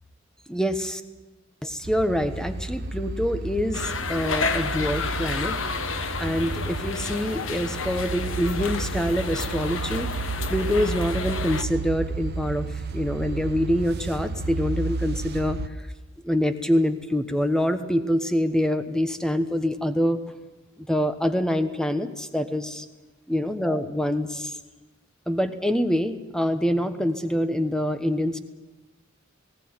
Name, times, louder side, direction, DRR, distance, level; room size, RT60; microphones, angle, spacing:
voice 1, 0.5-1.0 1.6-5.6 6.2-12.7 12.9-15.6 16.2-20.2 20.8-22.8 23.3-24.6 25.3-28.4, equal, 5° left, 9 dB, 1.2 m, -25 dB
sound 1, 1.8-15.7, right 3 dB, 55° right, 1.0 m, -32 dB
sound 2, 3.7-11.6, left 4 dB, 85° left, 1.4 m, -31 dB
19.0 x 17.0 x 9.7 m, 1.2 s
head